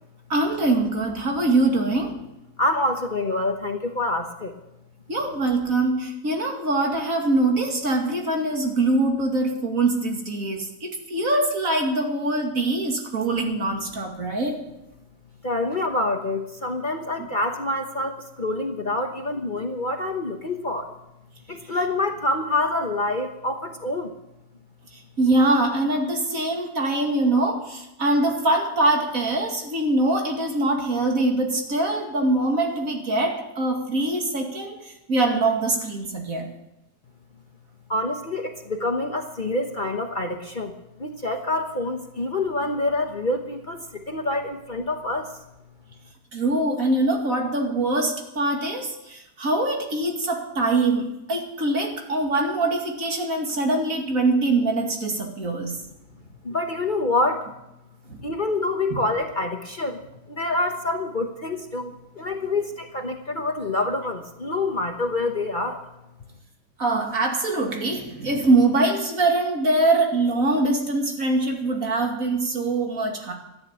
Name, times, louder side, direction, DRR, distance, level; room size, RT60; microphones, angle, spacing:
voice 1, 0.3-2.2 5.1-14.6 25.2-36.5 46.3-55.7 58.1-58.2 66.8-73.3, right 2 dB, 60° right, 2 dB, 2.8 m, -23 dB
voice 2, 2.6-4.5 15.4-21.0 21.5-24.2 37.9-45.3 56.4-57.5 58.2-60.0 60.3-65.8, left 2 dB, 35° left, 4 dB, 1.1 m, -26 dB
14.0 x 10.5 x 8.4 m, 0.88 s
omnidirectional pair, 1.7 m